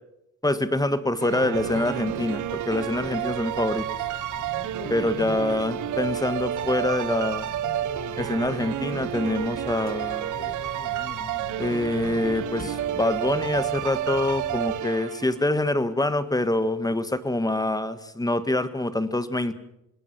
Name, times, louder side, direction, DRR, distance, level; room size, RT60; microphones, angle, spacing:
voice 1, 0.4-3.9 4.9-7.5 8.2-10.3 11.6-19.5, left 2 dB, 10° left, 12 dB, 1.7 m, -25 dB
sound 1, 1.2-15.5, right 12 dB, 80° right, 1.1 m, -30 dB
sound 2, 1.5-14.8, left 6 dB, 30° left, 1.7 m, -42 dB
27.0 x 20.0 x 6.0 m, 0.84 s
cardioid pair, 90°, 30 cm